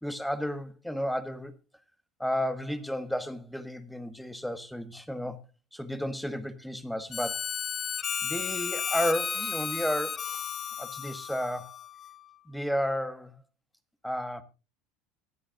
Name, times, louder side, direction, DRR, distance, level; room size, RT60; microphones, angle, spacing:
voice 1, 0.0-1.5 2.2-5.4 5.7-7.4 8.2-10.2 10.8-11.8 12.5-13.4 14.0-14.4, equal, 5° left, 1.4 m, -32 dB
Harmonica, 7.1-12.3, left 7 dB, 35° left, 0.6 m, -34 dB
24.0 x 8.8 x 2.5 m
hypercardioid pair, 75°, 0 cm